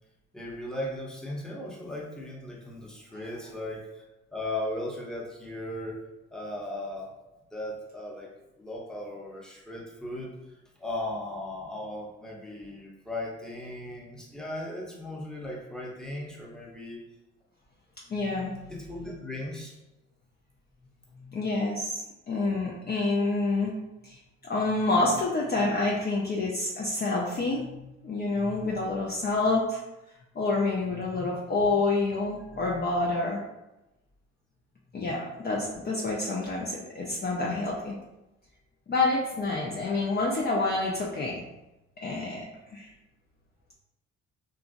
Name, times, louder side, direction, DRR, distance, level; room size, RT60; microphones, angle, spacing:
voice 1, 0.3-4.1 4.3-6.0 6.3-7.1 7.5-10.4 10.8-17.0 18.7-19.7 30.8-31.3, left 1 dB, ahead, -3 dB, 0.8 m, -37 dB
voice 2, 18.1-18.6 21.3-23.7 24.0-24.2 24.4-29.8 30.4-33.4 34.9-38.0 38.9-41.4 42.0-42.4 42.7-42.9, left 3 dB, 30° left, -3 dB, 0.5 m, -28 dB
2.9 x 2.4 x 2.5 m, 0.96 s
hypercardioid pair, 50°, 35 cm